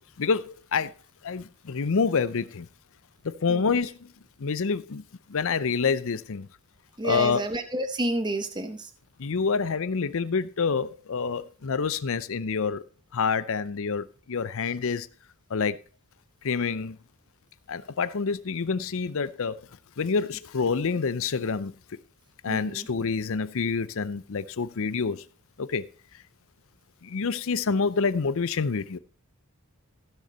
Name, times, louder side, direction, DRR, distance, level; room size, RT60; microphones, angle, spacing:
voice 1, 0.2-0.9 1.2-2.7 3.2-4.1 4.4-5.0 5.3-6.5 7.0-7.4 9.2-12.8 13.1-15.1 15.5-15.8 16.4-17.0 17.7-19.6 20.0-21.7 22.4-25.2 25.6-25.8 27.0-29.0, left 5 dB, 65° left, 0.6 m, -27 dB
voice 2, 7.0-8.9 22.5-22.9, right 1 dB, 20° right, 0.9 m, -30 dB
15.5 x 6.6 x 4.2 m
head